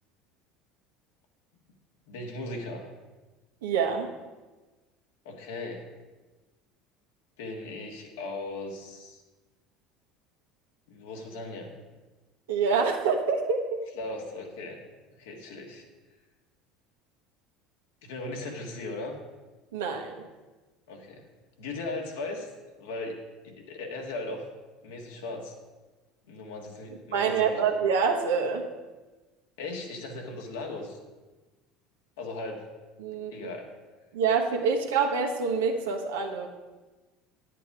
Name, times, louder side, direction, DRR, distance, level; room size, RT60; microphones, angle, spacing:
voice 1, 2.1-2.9 5.3-5.9 7.4-9.2 10.9-11.8 13.9-14.8 15.2-15.8 18.0-19.2 20.9-21.2 21.6-22.5 22.8-23.2 23.4-24.4 24.8-25.5 26.3-27.7 29.6-31.0 32.2-32.7 33.1-33.7, left 2 dB, 80° left, 2 dB, 1.7 m, -38 dB
voice 2, 3.6-4.1 12.5-13.8 19.7-20.2 27.1-28.6 33.0-33.3 34.1-36.5, right 5 dB, 85° right, 2 dB, 1.3 m, -26 dB
9.5 x 8.3 x 4.8 m, 1.2 s
hypercardioid pair, 85°, 0 cm